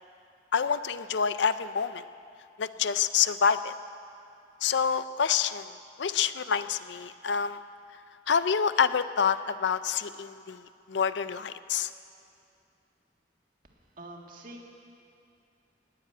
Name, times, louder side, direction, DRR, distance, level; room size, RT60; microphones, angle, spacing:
voice 1, 0.5-2.0 2.6-3.7 4.6-5.7 6.0-7.6 8.3-10.6 10.9-11.9, left 7 dB, 70° left, 13 dB, 0.5 m, -27 dB
voice 2, 13.6-14.6, right 1 dB, 50° right, 1 dB, 1.9 m, -46 dB
19.5 x 7.5 x 9.0 m, 2.6 s
head